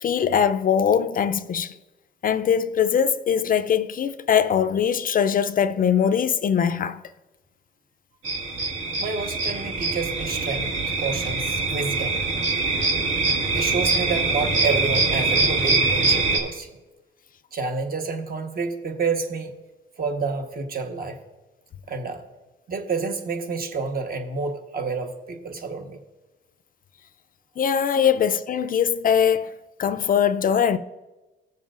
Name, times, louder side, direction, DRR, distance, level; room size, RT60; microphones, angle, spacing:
voice 1, 0.0-1.7 2.2-7.0 27.6-29.5 29.8-30.8, left 8 dB, 45° left, 0.4 m, -21 dB
sound 1, 8.2-16.4, right 3 dB, 75° right, 1.8 m, -23 dB
voice 2, 9.0-12.2 13.5-16.7 17.5-19.5 20.0-21.2 21.9-22.2 22.7-26.0 28.0-28.1, right 4 dB, 50° right, 1.2 m, -29 dB
17.5 x 7.1 x 2.5 m
cardioid pair, 90°, 20 cm